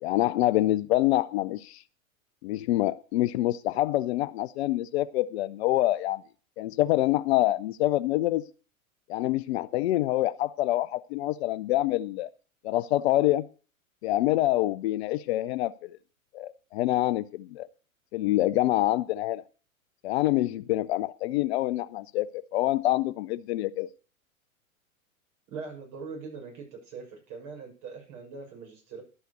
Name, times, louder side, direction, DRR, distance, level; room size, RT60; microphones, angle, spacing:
voice 1, 0.0-1.8 2.4-6.2 6.6-8.4 9.1-12.3 12.6-13.4 14.0-16.0 16.3-17.7 18.1-19.4 20.0-23.9, left 15 dB, 50° left, 0.6 m, -26 dB
voice 2, 25.5-29.0, right 4 dB, 45° right, 6.5 m, -41 dB
12.0 x 5.7 x 8.2 m
hypercardioid pair, 100°, 42 cm